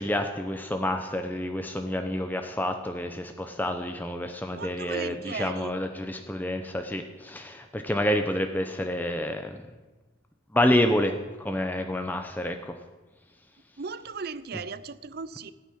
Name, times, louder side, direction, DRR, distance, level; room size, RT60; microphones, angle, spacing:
voice 1, 0.0-9.6 10.5-12.7, left 1 dB, 10° left, 5 dB, 0.7 m, -28 dB
voice 2, 4.5-5.7 13.8-15.5, right 4 dB, 50° right, 16 dB, 0.6 m, -37 dB
16.5 x 9.2 x 5.9 m, 1.2 s
head